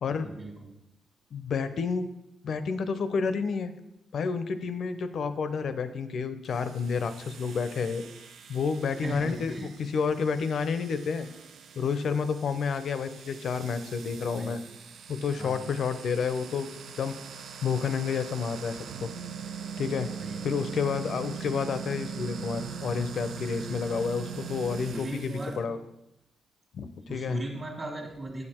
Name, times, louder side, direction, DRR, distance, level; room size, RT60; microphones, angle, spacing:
voice 1, 0.1-0.7 9.0-9.7 14.3-14.6 15.4-15.7 20.2-20.4 24.9-25.8 27.1-28.5, right 1 dB, 25° right, -4 dB, 1.5 m, -37 dB
voice 2, 1.3-2.1 2.4-3.7 4.1-8.0 8.5-11.3 11.8-14.6 15.1-16.7 17.0-17.2 17.6-19.1 19.8-20.1 20.4-25.8 26.7-27.4, left 5 dB, 60° left, 11 dB, 0.6 m, -30 dB
sound 1, 6.4-25.6, right 7 dB, 70° right, 0.6 m, -42 dB
8.4 x 6.6 x 4.4 m, 0.89 s
cardioid pair, 115°, 0 cm